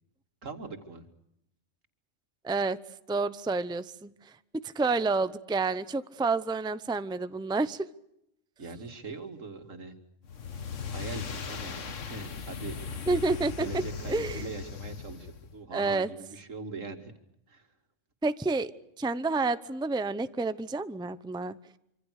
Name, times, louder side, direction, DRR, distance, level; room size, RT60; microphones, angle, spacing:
voice 1, 0.4-1.0 8.6-10.0 10.9-12.8 13.1-13.2 13.6-17.2 17.5-17.7, right 3 dB, 75° right, 6 dB, 2.7 m, -41 dB
voice 2, 2.4-2.8 3.1-4.3 4.7-7.9 13.1-13.8 14.1-14.4 15.7-16.1 18.2-18.7 19.0-21.5, right 3 dB, 5° right, 13 dB, 0.7 m, -29 dB
sound 1, 10.2-15.6, left 6 dB, 70° left, 1.7 m, -38 dB
26.0 x 25.5 x 6.6 m, 0.78 s
omnidirectional pair, 1.3 m